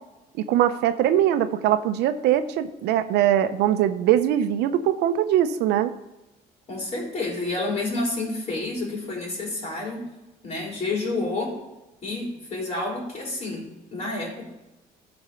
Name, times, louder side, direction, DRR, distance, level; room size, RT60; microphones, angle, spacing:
voice 1, 0.4-5.9, right 11 dB, 85° right, 10 dB, 0.7 m, -22 dB
voice 2, 6.7-10.1 10.4-11.6 12.0-14.4, left 2 dB, 40° left, -2 dB, 3.8 m, -29 dB
13.0 x 4.4 x 5.6 m, 1.0 s
cardioid pair, 110°, 17 cm